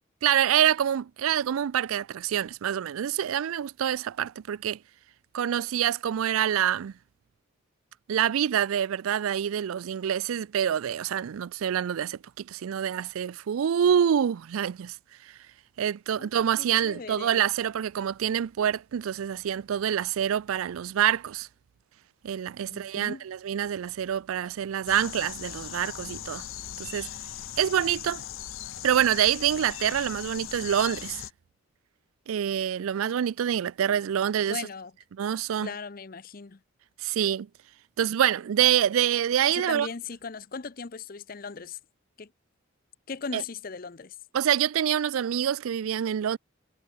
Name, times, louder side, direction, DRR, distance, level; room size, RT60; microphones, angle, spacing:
voice 1, 0.2-4.8 5.3-6.9 8.1-15.0 15.2-15.3 15.8-21.5 22.2-26.5 26.8-27.1 27.6-28.2 28.8-31.2 32.3-34.6 35.1-35.7 37.0-37.5 38.0-39.9 43.3-43.4 44.3-46.4, right 9 dB, 90° right, 0.4 m, -26 dB
voice 2, 16.6-17.4 22.7-23.2 34.5-34.9 35.6-36.6 39.5-41.8 42.2-42.3 43.1-44.2, left 5 dB, 45° left, 0.6 m, -38 dB
sound 1, 24.9-31.3, left 11 dB, 75° left, 0.7 m, -39 dB
head